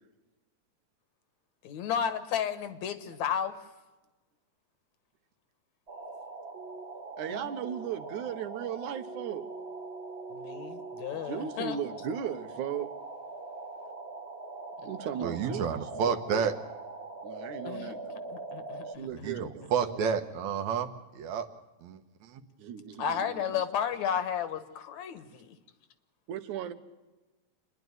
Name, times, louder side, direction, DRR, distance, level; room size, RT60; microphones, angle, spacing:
voice 1, 1.6-3.7 7.3-7.5 10.3-11.8 15.4-15.7 17.6-19.5 23.0-25.6, left 8 dB, 70° left, 2.4 m, -33 dB
sound 1, 5.9-19.0, right 3 dB, 35° right, 1.0 m, -42 dB
voice 2, 7.2-9.4 11.3-12.9 14.9-16.5 17.2-18.4 18.8-20.0 22.6-23.6 26.3-26.7, right 9 dB, 90° right, 2.6 m, -37 dB
voice 3, 15.2-16.5 19.2-21.5 21.8-22.4, right 6 dB, 75° right, 2.4 m, -30 dB
27.0 x 10.5 x 9.4 m
omnidirectional pair, 3.4 m